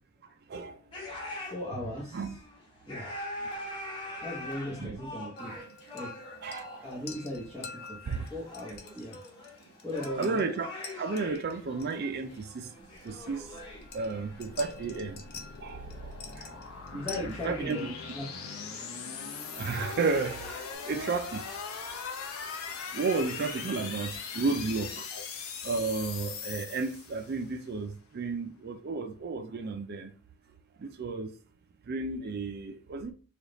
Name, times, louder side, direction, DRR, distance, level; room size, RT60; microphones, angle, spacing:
sound 1, 0.9-20.8, left 1 dB, 25° left, 1.1 m, -45 dB
voice 1, 1.5-2.3 2.9-3.1 4.2-5.6 5.9-6.1 6.8-8.0 8.3-9.2 9.8-10.4 16.9-18.6 25.1-25.2, left 1 dB, 5° left, 0.8 m, -38 dB
voice 2, 4.7-5.0 6.4-6.8 8.1-8.3 10.2-12.7 13.0-13.4 13.9-15.9 16.4-16.5 16.9-17.8 19.5-20.4 20.9-21.6 22.9-25.1 25.6-30.1 30.8-31.3 31.9-33.1, right 4 dB, 45° right, 0.4 m, -33 dB
sound 2, 5.4-20.2, left 5 dB, 45° left, 0.6 m, -49 dB
sound 3, 13.3-27.5, left 5 dB, 85° left, 0.7 m, -41 dB
3.4 x 2.3 x 3.8 m
head